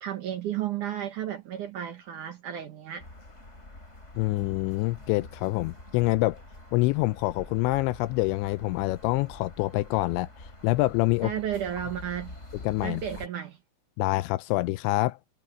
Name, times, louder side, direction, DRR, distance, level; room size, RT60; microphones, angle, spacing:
voice 1, 0.0-3.1 11.2-12.4 12.8-13.6, right 10 dB, 70° right, 1.9 m, -33 dB
sound 1, 3.0-13.3, left 1 dB, 15° left, 5.1 m, -46 dB
voice 2, 4.2-6.4 6.7-10.3 10.6-11.3 12.6-13.0 14.0-15.2, left 19 dB, 85° left, 2.7 m, -26 dB
omnidirectional pair, 5.4 m